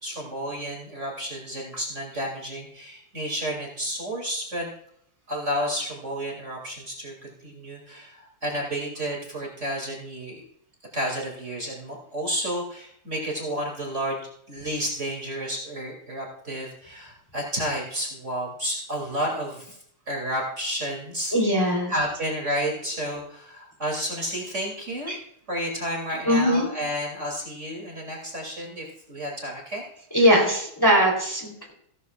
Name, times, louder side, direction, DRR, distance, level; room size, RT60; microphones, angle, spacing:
voice 1, 0.0-4.7 5.3-10.4 10.9-14.2 14.5-19.8 20.1-21.3 21.9-25.1 25.5-29.8, equal, 35° right, -1 dB, 3.0 m, -31 dB
voice 2, 21.3-21.9 25.1-25.2 26.2-26.7 30.1-31.7, equal, 10° left, -1 dB, 3.0 m, -20 dB
16.5 x 13.5 x 2.4 m, 0.68 s
omnidirectional pair, 2.4 m